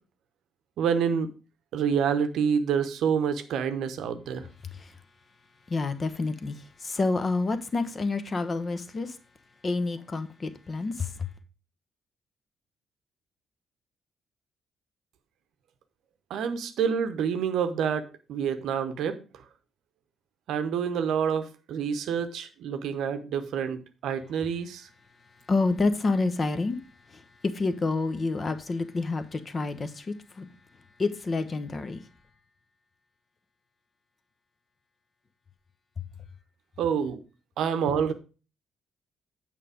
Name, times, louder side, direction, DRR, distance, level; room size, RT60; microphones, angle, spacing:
voice 1, 0.8-1.3 1.7-4.5 16.3-19.2 20.5-24.9 36.8-37.2 37.6-38.1, right 7 dB, 60° right, 0.8 m, -27 dB
voice 2, 5.7-9.2 9.6-11.3 25.5-26.8 27.1-30.5 31.0-32.1, left 3 dB, 35° left, 1.0 m, -28 dB
8.8 x 5.3 x 4.9 m
figure-of-eight pair, 40°, 0 cm